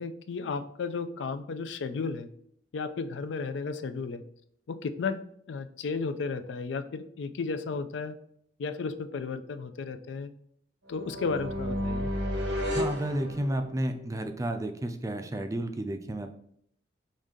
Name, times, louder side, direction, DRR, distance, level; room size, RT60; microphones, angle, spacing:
voice 1, 0.0-2.3 2.7-4.2 4.7-5.2 5.5-8.2 8.6-10.3 10.9-12.1, left 4 dB, 75° left, 10 dB, 0.4 m, -33 dB
sound 1, 10.9-14.0, equal, 85° right, 1.2 m, -32 dB
voice 2, 12.7-16.3, right 1 dB, 20° right, 7 dB, 0.4 m, -31 dB
5.0 x 2.7 x 3.6 m, 0.67 s
head